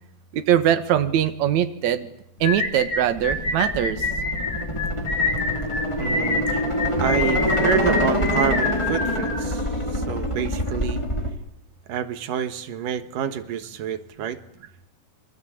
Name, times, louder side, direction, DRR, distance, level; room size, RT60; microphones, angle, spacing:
voice 1, 0.3-2.1 2.4-4.1, right 10 dB, 65° right, 10 dB, 2.7 m, -22 dB
sound 1, 2.4-9.8, left 3 dB, 45° left, 3.9 m, -27 dB
sound 2, 3.2-11.3, equal, 10° left, 3.5 m, -26 dB
voice 2, 6.0-6.6 7.0-11.0 11.9-14.4, right 9 dB, 85° right, 11 dB, 3.0 m, -28 dB
28.0 x 24.5 x 8.6 m, 0.74 s
omnidirectional pair, 3.7 m